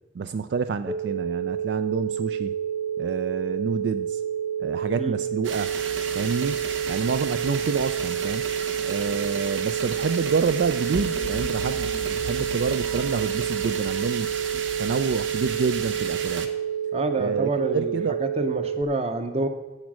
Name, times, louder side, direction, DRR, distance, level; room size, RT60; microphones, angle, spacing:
voice 1, 0.1-2.5 3.0-4.2 4.6-5.7 6.1-8.5 8.8-16.5 17.2-18.2, right 5 dB, 65° right, 11 dB, 0.3 m, -28 dB
sound 1, 0.9-18.8, right 8 dB, 5° right, 0.5 m, -29 dB
sound 2, 5.4-16.5, right 6 dB, 80° right, 1.0 m, -34 dB
sound 3, 10.9-15.2, left 3 dB, 60° left, 0.5 m, -39 dB
voice 2, 16.9-19.5, right 2 dB, 30° right, 8 dB, 0.8 m, -28 dB
10.5 x 7.1 x 6.2 m, 1.1 s
head